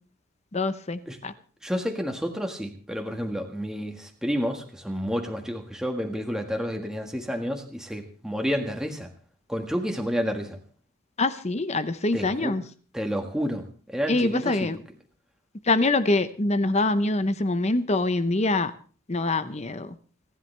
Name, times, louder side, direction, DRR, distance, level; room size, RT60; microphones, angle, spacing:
voice 1, 0.5-1.3 11.2-12.6 14.1-14.8 15.7-18.7 19.1-19.9, left 2 dB, 30° left, 12 dB, 0.8 m, -24 dB
voice 2, 1.6-9.1 9.5-10.6 12.1-12.6 12.9-14.7, equal, 5° right, 3 dB, 1.6 m, -30 dB
29.5 x 11.0 x 3.3 m, 0.40 s
head